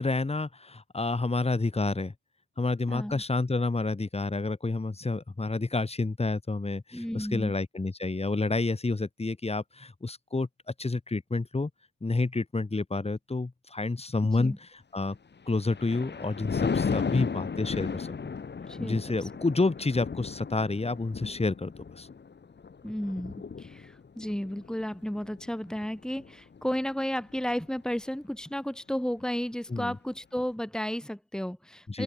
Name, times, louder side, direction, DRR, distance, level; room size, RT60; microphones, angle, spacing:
voice 1, 0.0-2.1 2.6-10.5 10.8-11.7 12.0-14.5 14.9-15.2 15.5-18.1 18.8-22.1 29.7-29.9 31.9-32.0, left 3 dB, 20° left, 6.5 m, -29 dB
voice 2, 2.9-3.2 6.9-7.5 14.3-14.6 18.7-19.3 22.8-32.0, equal, ahead, 6.2 m, -33 dB
Thunder, 15.3-26.8 27.3-27.6, left 5 dB, 35° left, 3.5 m, -35 dB
open air
cardioid pair, 90°, 30 cm